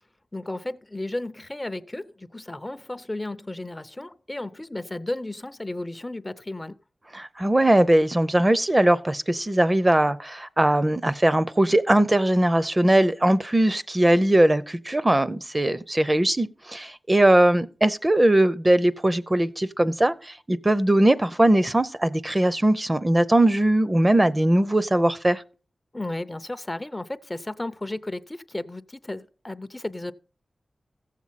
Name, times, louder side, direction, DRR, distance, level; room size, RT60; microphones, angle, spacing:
voice 1, 0.3-6.8 25.9-30.1, left 1 dB, 20° left, 0.5 m, -34 dB
voice 2, 7.1-25.4, right 1 dB, 25° right, 0.6 m, -20 dB
15.0 x 7.4 x 4.1 m
wide cardioid pair, 75°, 0 cm